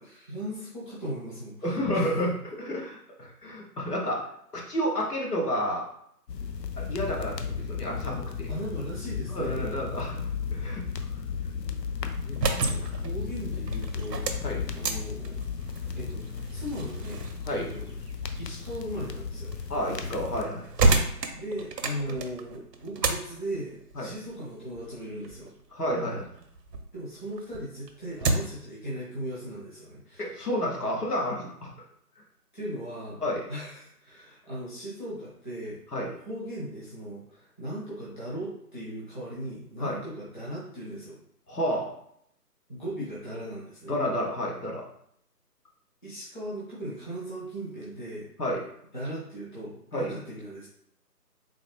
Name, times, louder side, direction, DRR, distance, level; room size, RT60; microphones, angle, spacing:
voice 1, 0.1-2.3 8.5-9.7 12.5-15.4 16.0-17.3 17.5-17.9 18.4-19.5 21.3-25.5 26.9-30.3 32.5-33.2 33.5-35.8 36.2-41.2 42.7-43.9 46.0-48.3 48.9-50.7, right 1 dB, 30° left, -8 dB, 0.9 m, -38 dB
voice 2, 1.6-4.2 4.5-5.9 6.8-8.5 9.3-10.2 10.5-10.8 12.2-12.9 14.4-14.6 17.4-17.7 19.7-20.7 23.9-24.1 25.7-26.3 30.2-31.7 33.2-33.4 35.9-36.1 39.8-40.0 41.5-41.9 43.9-44.8 48.4-48.6 49.9-50.1, equal, 70° left, -2 dB, 1.2 m, -30 dB
sound 1, 6.3-20.4, left 6 dB, 90° left, 0.6 m, -35 dB
sound 2, 12.2-26.9 27.3-28.7, right 3 dB, 80° right, 0.7 m, -32 dB
3.8 x 2.1 x 3.2 m, 0.70 s
figure-of-eight pair, 170°, 48 cm